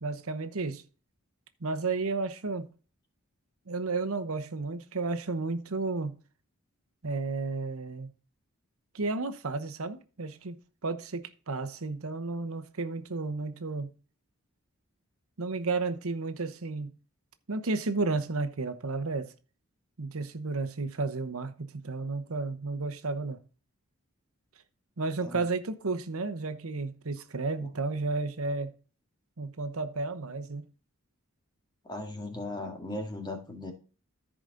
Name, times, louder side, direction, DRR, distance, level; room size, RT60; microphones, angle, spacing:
voice 1, 0.0-0.8 1.6-2.7 3.7-6.2 7.0-8.1 8.9-10.6 10.8-13.9 15.4-16.9 17.5-19.3 20.0-23.4 25.0-28.7 29.4-30.6, right 3 dB, 75° right, 0.9 m, -32 dB
voice 2, 31.8-33.7, left 2 dB, 20° left, 1.8 m, -37 dB
14.5 x 5.0 x 3.9 m
head